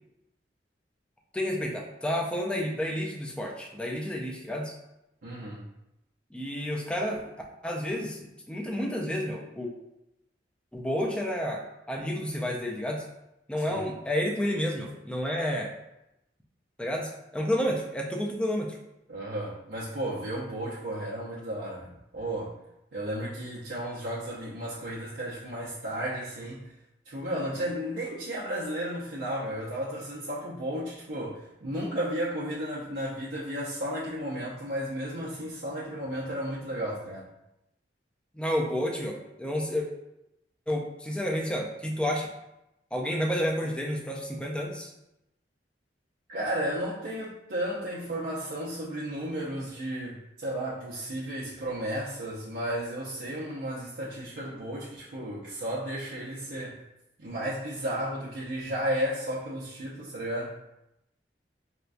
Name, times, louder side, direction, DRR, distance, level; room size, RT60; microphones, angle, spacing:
voice 1, 1.3-4.7 6.3-7.2 7.6-9.7 10.7-13.0 13.5-15.7 16.8-18.8 38.3-39.9 40.7-42.3 42.9-44.9, equal, 5° left, 0 dB, 0.4 m, -30 dB
voice 2, 5.2-5.7 13.7-13.9 19.1-22.6 22.9-26.7 27.1-37.3 46.3-56.8 57.2-60.5, right 1 dB, 90° right, -7 dB, 0.6 m, -33 dB
4.3 x 2.2 x 2.5 m, 0.88 s
head